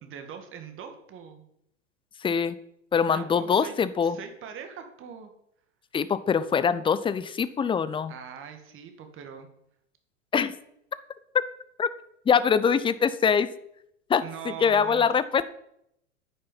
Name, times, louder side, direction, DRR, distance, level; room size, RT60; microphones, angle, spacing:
voice 1, 0.0-1.4 3.1-3.7 4.0-5.3 8.1-9.5 14.2-15.1, right 6 dB, 35° right, 6 dB, 2.2 m, -41 dB
voice 2, 2.2-2.6 2.9-4.2 5.9-8.1 10.3-10.5 11.8-11.9 12.3-13.5 14.1-14.2 14.6-15.4, left 6 dB, 15° left, 15 dB, 0.6 m, -23 dB
9.8 x 9.6 x 5.6 m, 0.74 s
hypercardioid pair, 95°, 37 cm